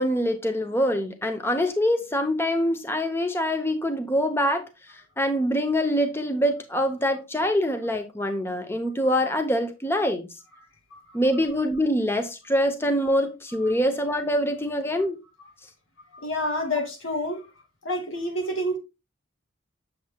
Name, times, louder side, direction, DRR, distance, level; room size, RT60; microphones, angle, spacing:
voice 1, 0.0-4.7 5.2-10.3 11.1-15.2, equal, 10° left, 0.7 m, -24 dB
voice 2, 16.1-17.5 17.8-18.8, left 1 dB, 80° left, 2.3 m, -28 dB
7.7 x 7.4 x 2.2 m
head